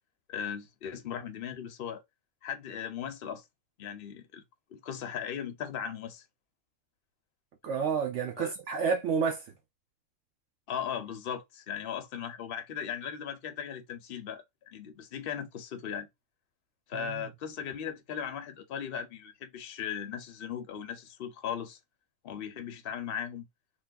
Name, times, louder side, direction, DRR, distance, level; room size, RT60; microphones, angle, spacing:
voice 1, 0.3-2.0 2.4-3.4 3.8-4.4 4.7-6.2 8.4-8.5 10.7-16.1 16.9-21.8 22.2-23.5, left 8 dB, 50° left, 0.8 m, -38 dB
voice 2, 7.6-9.5 16.9-17.2, right 6 dB, 65° right, 0.9 m, -30 dB
3.3 x 2.9 x 2.3 m
omnidirectional pair, 1.4 m